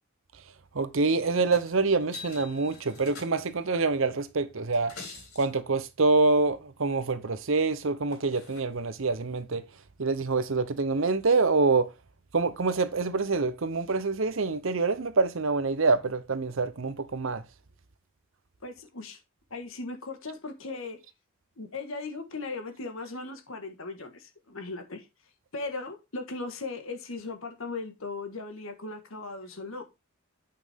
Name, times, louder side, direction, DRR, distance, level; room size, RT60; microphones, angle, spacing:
voice 1, 0.7-4.9 5.4-9.6 10.0-11.9 12.3-17.4, right 3 dB, 65° right, 0.7 m, -26 dB
sound 1, 1.5-1.7 2.0-3.7 4.6-5.5 7.6-7.7 8.1-8.6 9.5-9.6, left 4 dB, 90° left, 3.8 m, -45 dB
voice 2, 18.6-19.2 19.5-21.0 21.6-25.1 25.5-29.8, left 3 dB, 70° left, 1.5 m, -38 dB
8.5 x 5.7 x 3.5 m
head